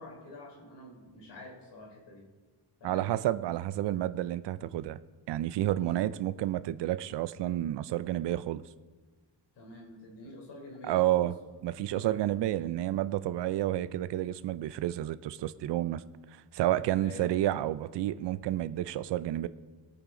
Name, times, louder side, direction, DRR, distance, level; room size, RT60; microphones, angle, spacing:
voice 1, 0.0-2.3 2.8-3.1 5.8-6.0 9.6-11.3 11.9-12.3 17.0-17.3, left 2 dB, 75° left, -1 dB, 3.7 m, -47 dB
voice 2, 2.8-5.0 5.3-8.6 10.8-11.3 11.6-16.0 16.5-19.5, right 13 dB, 75° right, 15 dB, 0.6 m, -30 dB
22.0 x 8.8 x 3.8 m, 1.3 s
wide cardioid pair, 175°, 42 cm